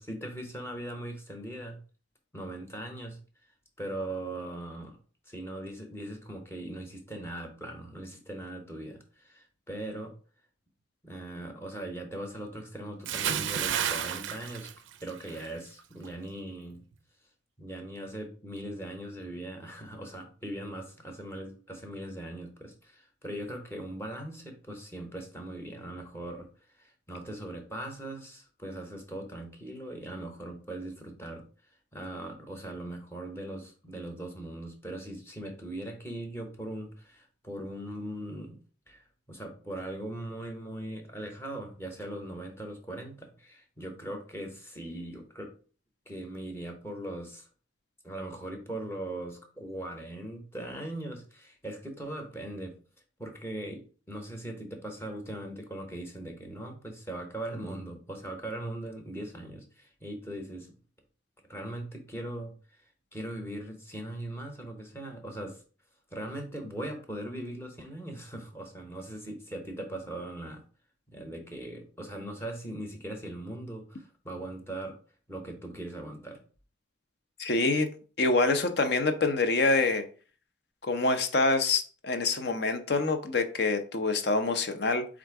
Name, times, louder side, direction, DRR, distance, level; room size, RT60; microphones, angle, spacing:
voice 1, 0.0-1.8 2.3-3.2 3.8-5.0 5.3-10.1 11.0-14.7 15.0-16.8 17.6-26.5 26.8-31.4 31.9-38.6 38.9-45.5 46.1-47.5 48.0-52.7 53.2-60.8 61.5-62.8 63.1-65.6 66.1-70.6 71.1-75.0 75.3-76.4, right 1 dB, 10° left, 0.8 m, -40 dB
Bathtub (filling or washing) / Splash splatter, 13.0-15.5 15.8-16.1, right 9 dB, 75° right, 0.4 m, -31 dB
voice 2, 77.4-77.9 78.2-80.0 80.8-85.1, left 3 dB, 55° left, 0.6 m, -26 dB
4.4 x 2.5 x 4.5 m
head